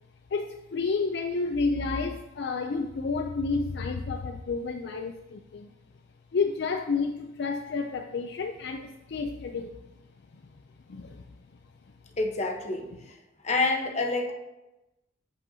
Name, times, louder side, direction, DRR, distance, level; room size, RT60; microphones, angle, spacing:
voice 1, 0.3-5.7 6.3-9.8 10.9-11.3, left 4 dB, 60° left, 5 dB, 0.4 m, -30 dB
voice 2, 12.2-12.9 13.4-14.3, left 3 dB, 35° left, 3 dB, 1.0 m, -27 dB
14.0 x 5.3 x 2.8 m, 0.99 s
head